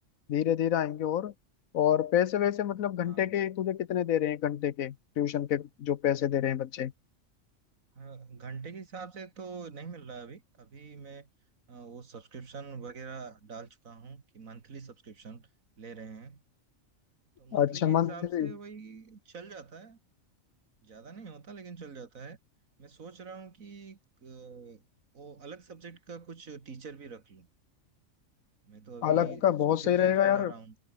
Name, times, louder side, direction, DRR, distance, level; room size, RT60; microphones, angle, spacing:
voice 1, 0.3-1.3 1.7-6.9 17.5-18.5 29.0-30.5, left 10 dB, 80° left, 1.3 m, -27 dB
voice 2, 3.0-3.4 7.9-11.3 11.7-15.5 15.8-16.4 17.4-20.0 20.8-22.4 22.8-24.9 25.1-27.5 28.7-30.8, right 5 dB, 80° right, 2.5 m, -45 dB
omnidirectional pair, 1.4 m